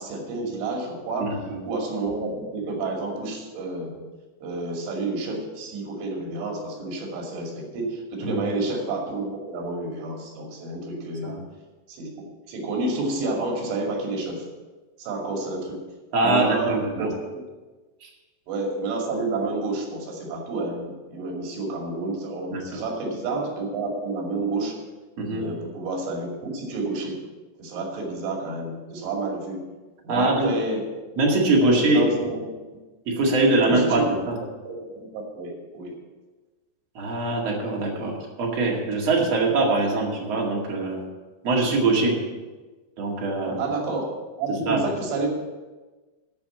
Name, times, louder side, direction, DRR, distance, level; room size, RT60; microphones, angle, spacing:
voice 1, 0.0-1.4 1.7-3.9 4.4-11.3 11.9-12.1 12.5-14.5 15.0-15.8 16.2-17.4 18.5-24.8 25.3-27.2 27.6-29.6 30.0-30.9 31.6-32.4 33.6-34.2 34.6-36.0 43.6-44.1 44.4-45.3, right 3 dB, 75° right, 0 dB, 4.9 m, -29 dB
voice 2, 1.2-1.6 8.2-8.3 11.2-11.4 16.1-17.1 18.0-18.1 22.5-22.8 25.2-25.4 30.1-30.5 31.2-32.1 33.1-34.4 36.9-41.0 41.4-42.2 43.0-43.6 44.5-44.9, right 2 dB, 50° right, -2 dB, 2.1 m, -23 dB
13.0 x 5.9 x 7.3 m, 1.2 s
omnidirectional pair, 5.6 m